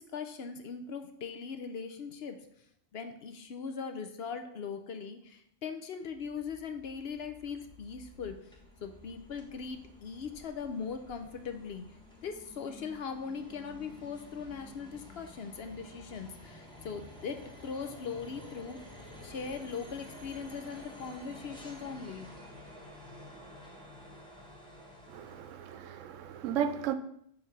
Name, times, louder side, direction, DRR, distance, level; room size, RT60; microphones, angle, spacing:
voice 1, 0.0-2.5 2.9-8.5 8.8-11.8 12.2-18.8 19.2-22.3, left 6 dB, 60° left, 0.8 m, -40 dB
sound 1, 6.0-25.8, left 1 dB, 5° left, 1.0 m, -51 dB
voice 2, 25.1-26.9, right 8 dB, 80° right, 0.9 m, -34 dB
6.8 x 3.3 x 5.6 m
omnidirectional pair, 1.3 m